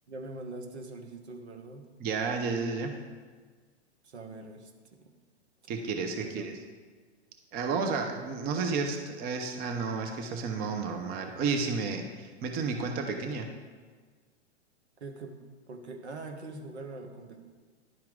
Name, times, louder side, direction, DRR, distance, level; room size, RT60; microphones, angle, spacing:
voice 1, 0.1-1.9 4.0-5.1 6.2-6.7 15.0-15.4 15.7-17.4, right 3 dB, 75° right, 5 dB, 1.0 m, -43 dB
voice 2, 2.0-2.9 5.7-6.5 7.5-13.5, right 4 dB, 25° right, 4 dB, 0.7 m, -31 dB
11.0 x 4.5 x 3.7 m, 1.5 s
hypercardioid pair, 110°, 34 cm